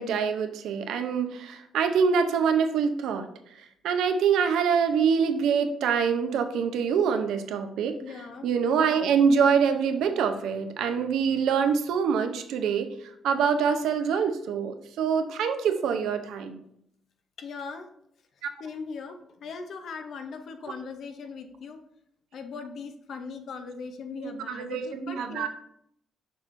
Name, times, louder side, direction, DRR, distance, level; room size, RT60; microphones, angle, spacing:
voice 1, 0.0-3.3 3.8-7.9 8.4-12.9 13.2-16.6 18.4-18.5 24.2-25.5, right 6 dB, 80° right, 7 dB, 0.6 m, -25 dB
voice 2, 8.0-8.5 17.4-17.9 18.6-21.8 22.3-25.5, left 5 dB, 65° left, 7 dB, 0.7 m, -39 dB
6.4 x 5.8 x 2.6 m, 0.73 s
cardioid pair, 90°, 0 cm